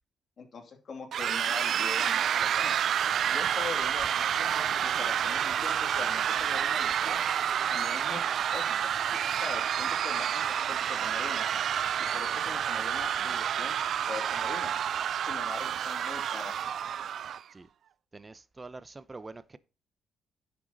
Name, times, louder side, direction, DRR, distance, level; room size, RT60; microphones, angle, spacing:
voice 1, 0.4-2.8 3.3-7.2 7.7-11.5 12.0-13.8 14.1-14.7 15.2-16.5, left 5 dB, 50° left, 2.7 m, -42 dB
sound 1, 1.1-17.4, right 9 dB, 65° right, 0.5 m, -29 dB
voice 2, 18.1-19.6, right 3 dB, 25° right, 0.8 m, -45 dB
10.0 x 7.0 x 4.1 m
cardioid pair, 90°, 0 cm